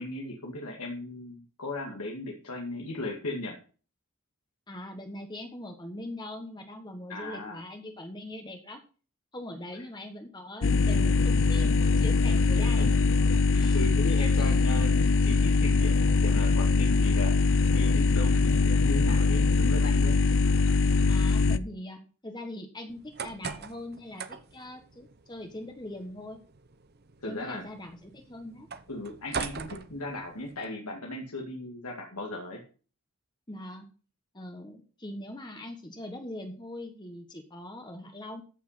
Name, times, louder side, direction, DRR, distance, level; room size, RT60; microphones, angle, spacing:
voice 1, 0.0-3.6 7.1-7.6 9.7-9.8 12.5-12.9 13.5-17.4 17.7-20.2 27.2-27.7 28.9-32.6, left 2 dB, 85° left, 0 dB, 2.2 m, -37 dB
voice 2, 4.7-8.8 9.3-13.2 13.5-13.9 14.2-14.6 21.1-26.4 27.2-28.7 33.5-33.9 34.3-38.4, left 1 dB, 20° left, 4 dB, 1.4 m, -41 dB
sound 1, 10.6-21.6, left 4 dB, 60° left, 0.6 m, -23 dB
sound 2, 22.9-30.6, right 5 dB, 45° right, 0.8 m, -42 dB
14.0 x 5.8 x 5.7 m, 0.38 s
head